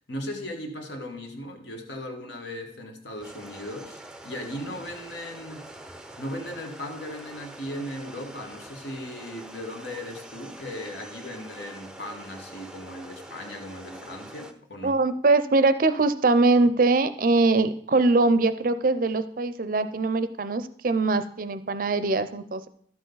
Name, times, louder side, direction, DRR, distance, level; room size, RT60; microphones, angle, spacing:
voice 1, 0.1-5.6 6.2-15.0, left 1 dB, 70° left, 3 dB, 1.6 m, -37 dB
sound 1, 3.2-14.5, right 1 dB, 5° right, 0.6 m, -45 dB
voice 2, 14.8-22.7, right 3 dB, 50° right, 12 dB, 0.5 m, -22 dB
12.0 x 7.7 x 3.9 m, 0.62 s
head